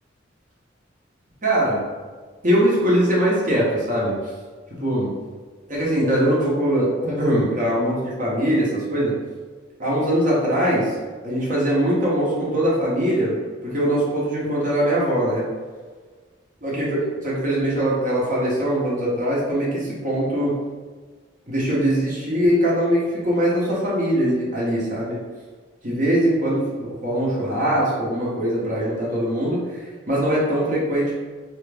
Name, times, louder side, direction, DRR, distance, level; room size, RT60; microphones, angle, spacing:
voice 1, 1.4-1.8 2.4-4.1 4.8-5.1 5.7-9.1 9.8-11.0 11.2-13.4 13.6-15.5 16.6-20.5 21.5-25.2 25.8-31.1, equal, 45° right, -6 dB, 1.1 m, -21 dB
3.4 x 3.1 x 3.4 m, 1.5 s
head